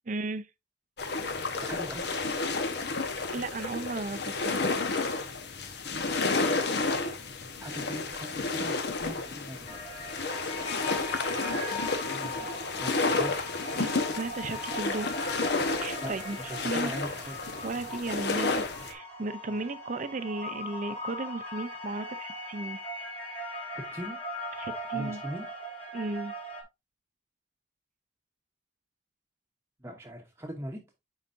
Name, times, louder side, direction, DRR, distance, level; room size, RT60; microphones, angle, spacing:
voice 1, 0.1-0.5 3.3-4.7 13.8-13.9 14.1-15.4 15.8-16.4 16.6-17.0 17.6-22.8 24.6-25.2 25.9-26.3, right 3 dB, 40° right, 0.5 m, -35 dB
sound 1, 1.0-18.9, left 3 dB, 60° left, 1.0 m, -31 dB
voice 2, 1.6-2.1 6.8-6.9 7.6-9.8 12.0-13.5 16.0-17.6 19.5-19.6 23.7-24.2 24.9-25.5 29.8-30.8, right 1 dB, 15° right, 0.9 m, -41 dB
sound 2, 9.7-26.6, equal, 35° left, 2.6 m, -40 dB
9.8 x 4.0 x 2.6 m
head